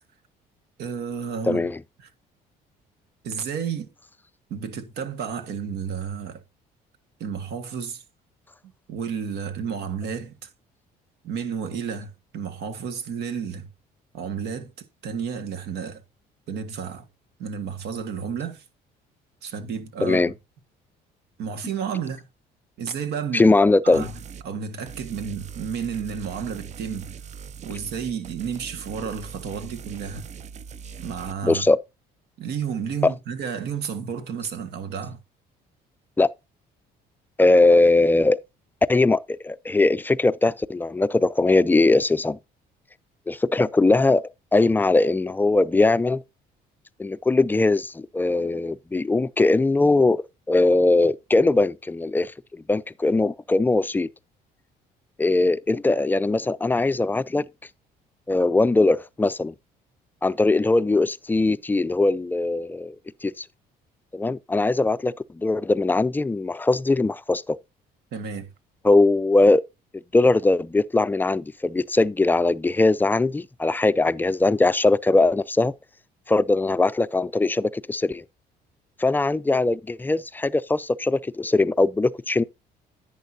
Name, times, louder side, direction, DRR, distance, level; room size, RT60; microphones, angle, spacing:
voice 1, 0.8-1.7 2.0-2.1 3.2-3.9 4.5-6.4 7.2-8.0 8.9-10.5 11.2-13.7 14.1-14.7 15.0-16.0 16.5-17.1 17.4-18.6 19.4-20.2 21.4-22.3 22.8-23.5 23.8-24.1 24.4-27.1 27.6-30.3 31.0-31.7 32.4-35.2 68.1-68.5, right 7 dB, 75° right, 1.6 m, -31 dB
voice 2, 1.5-1.8 20.0-20.3 23.3-24.1 31.4-31.8 33.0-33.1 36.2-36.3 37.4-38.4 38.9-42.4 43.3-46.2 47.0-52.3 52.7-54.1 55.2-57.5 58.3-59.5 60.2-62.9 63.2-63.4 64.1-67.6 68.8-69.6 70.1-75.7 76.3-78.2 79.0-82.4, left 2 dB, 10° left, 0.4 m, -20 dB
sound 1, 23.9-24.5 24.9-31.3, right 7 dB, 45° right, 0.5 m, -41 dB
10.5 x 9.1 x 2.7 m
cardioid pair, 110°, 17 cm